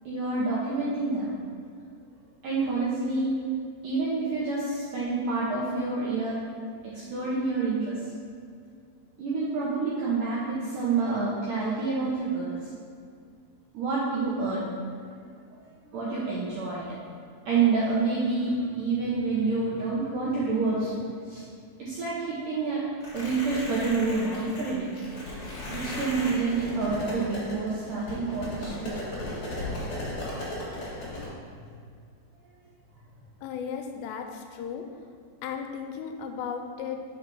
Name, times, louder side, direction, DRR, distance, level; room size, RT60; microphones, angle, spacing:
voice 1, 0.1-1.3 2.4-3.3 3.8-6.4 6.9-8.0 9.2-12.7 13.7-14.7 15.8-16.9 17.5-21.5 21.8-22.8 23.1-24.9 25.7-29.0 30.1-30.3, right 3 dB, 80° right, -7 dB, 1.9 m, -28 dB
sound 1, 23.0-31.3, left 1 dB, 55° left, 1.5 m, -36 dB
voice 2, 33.4-34.9 35.4-37.0, left 7 dB, 85° left, 5 dB, 2.7 m, -35 dB
5.7 x 4.7 x 5.2 m, 2.2 s
omnidirectional pair, 4.9 m